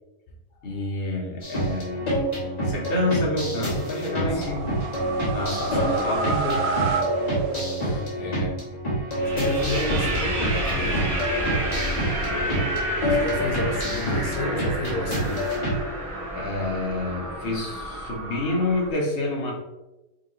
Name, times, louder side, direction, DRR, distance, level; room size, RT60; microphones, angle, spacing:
voice 1, 0.6-2.1 2.6-4.7 5.3-6.7 16.3-19.5, left 2 dB, 45° left, -3 dB, 1.2 m, -28 dB
sound 1, 1.4-15.8, right 1 dB, 30° left, 1.4 m, -28 dB
voice 2, 4.1-4.4 5.6-6.2 7.8-8.6 9.2-11.2 12.2-12.5 13.1-15.5, left 2 dB, 85° left, 2 dB, 1.3 m, -32 dB
sound 2, 4.3-7.1 9.1-18.9, right 1 dB, 40° right, 1.4 m, -30 dB
sound 3, 4.4-8.1, right 4 dB, 60° right, 0.7 m, -28 dB
5.1 x 3.1 x 3.0 m, 1.0 s
omnidirectional pair, 1.5 m